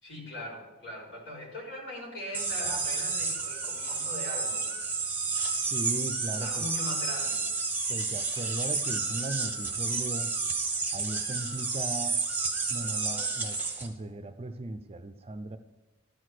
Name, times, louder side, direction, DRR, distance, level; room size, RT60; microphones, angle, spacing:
voice 1, 0.0-4.7 6.4-7.4, left 1 dB, 65° left, -3 dB, 3.7 m, -40 dB
sound 1, 2.3-13.9, right 4 dB, 10° right, 1.1 m, -31 dB
voice 2, 5.7-6.7 7.9-10.3 10.9-12.2 12.7-15.6, right 2 dB, 30° right, 9 dB, 0.6 m, -37 dB
13.0 x 4.8 x 6.2 m, 1.2 s
head